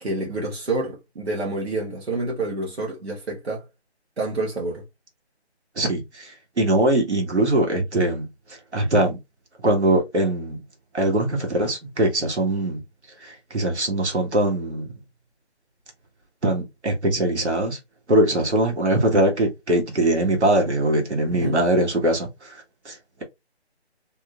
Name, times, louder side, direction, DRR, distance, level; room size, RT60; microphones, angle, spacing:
voice 1, 0.0-3.6 4.2-4.8 21.3-21.6, right 2 dB, 65° right, 1.3 m, -28 dB
voice 2, 5.8-9.2 9.6-10.6 10.9-12.8 13.2-14.9 16.4-17.8 18.1-22.5 22.9-23.2, right 1 dB, 80° right, 1.6 m, -22 dB
3.6 x 2.6 x 2.3 m
hypercardioid pair, 180°, 33 cm